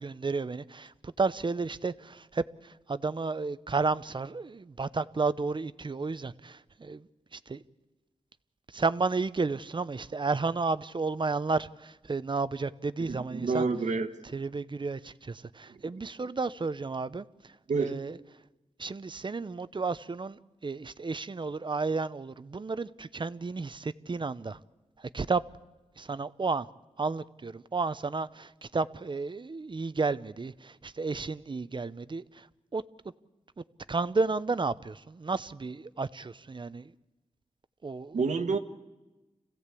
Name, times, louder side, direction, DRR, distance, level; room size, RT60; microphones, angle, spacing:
voice 1, 0.0-7.6 8.7-13.6 14.3-17.5 17.8-18.2 18.8-24.6 25.0-25.4 26.0-26.7 27.0-32.5 32.7-32.8 33.6-36.9 37.8-38.2, right 4 dB, 40° right, 0.7 m, -32 dB
voice 2, 13.1-14.1 15.7-15.8 17.7-18.0 38.1-38.6, right 4 dB, 80° right, 1.5 m, -29 dB
27.0 x 16.0 x 8.4 m
cardioid pair, 60°, 12 cm